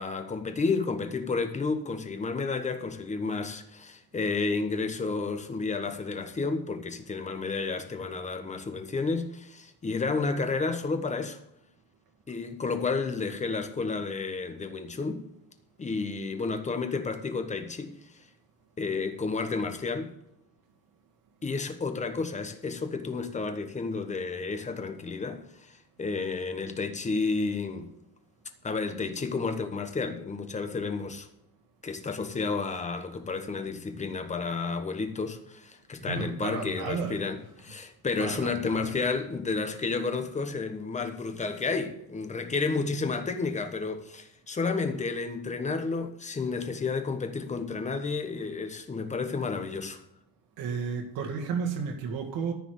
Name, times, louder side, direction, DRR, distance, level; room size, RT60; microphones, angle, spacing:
voice 1, 0.0-11.4 12.3-15.3 15.8-18.0 18.8-20.1 21.4-27.9 28.6-31.3 31.8-50.0, left 4 dB, 20° left, 1.1 m, -31 dB
voice 2, 36.0-37.7 38.2-39.0 50.6-52.5, right 5 dB, 85° right, 2.0 m, -33 dB
13.5 x 5.0 x 7.8 m
cardioid pair, 150°, 35 cm